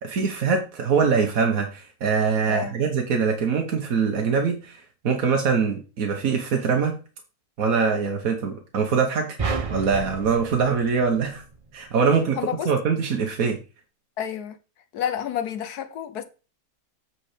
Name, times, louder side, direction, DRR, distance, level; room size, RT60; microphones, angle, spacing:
voice 1, 0.0-7.0 7.6-9.4 9.7-11.4 11.7-12.4 12.6-13.6, right 5 dB, 65° right, 1.5 m, -23 dB
voice 2, 2.5-2.9 12.4-12.7 14.2-14.6 14.9-16.2, left 9 dB, 90° left, 1.5 m, -30 dB
sound 1, 9.4-11.8, right 4 dB, 40° right, 0.5 m, -31 dB
8.5 x 4.5 x 5.0 m
omnidirectional pair, 1.6 m